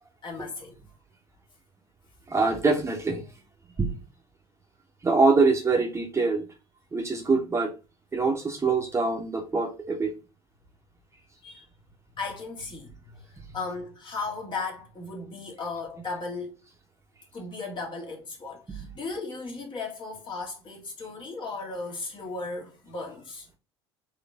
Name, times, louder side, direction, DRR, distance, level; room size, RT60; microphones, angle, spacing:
voice 1, 0.2-0.8 11.4-11.7 12.1-16.6 17.3-23.5, left 3 dB, 35° left, 1.7 m, -36 dB
voice 2, 2.3-3.2 3.8-3.9 5.0-6.4 6.9-7.7 8.1-10.1 18.7-18.8, right 4 dB, 20° right, 1.1 m, -24 dB
4.1 x 3.1 x 3.5 m
figure-of-eight pair, 60°, 14 cm